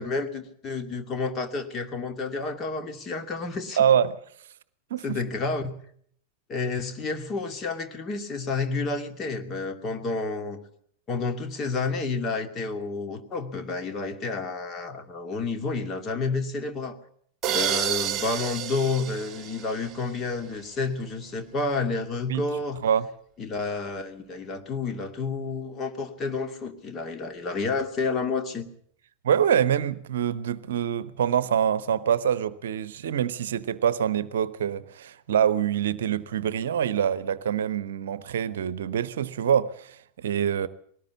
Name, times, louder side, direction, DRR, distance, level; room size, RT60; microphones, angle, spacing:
voice 1, 0.0-3.8 5.0-5.7 6.5-10.6 11.1-17.0 17.5-22.8 23.4-28.7, left 3 dB, 25° left, 2.4 m, -30 dB
voice 2, 3.8-4.2 4.9-5.2 22.3-22.4 22.8-23.1 29.2-40.7, right 9 dB, 60° right, 0.9 m, -25 dB
sound 1, 17.4-20.3, right 11 dB, 25° right, 1.6 m, -30 dB
21.0 x 18.5 x 8.2 m
figure-of-eight pair, 90°, 0 cm